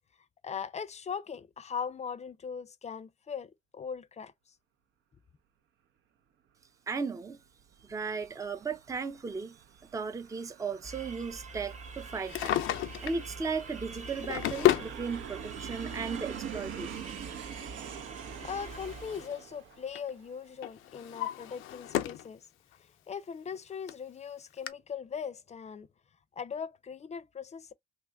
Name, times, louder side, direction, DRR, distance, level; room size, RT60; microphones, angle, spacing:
voice 1, 0.4-4.3 18.4-22.5 22.8-25.9 26.3-27.7, left 7 dB, 35° left, 0.5 m, -40 dB
voice 2, 6.9-7.4 7.9-9.6 9.9-12.6 13.0-17.1, right 5 dB, 15° right, 0.5 m, -36 dB
Aircraft, 7.4-20.6, right 8 dB, 75° right, 0.6 m, -46 dB
sound 1, 10.8-19.4, right 4 dB, 35° right, 0.8 m, -46 dB
Drawer open or close, 12.1-13.3 14.0-14.9 16.0-16.1 17.9-19.4 19.7-20.1 20.6-22.3 22.7-22.8 23.5-23.6 23.9-24.0 24.7-24.8, left 14 dB, 90° left, 0.5 m, -32 dB
2.9 x 2.4 x 3.4 m
cardioid pair, 90°, 20 cm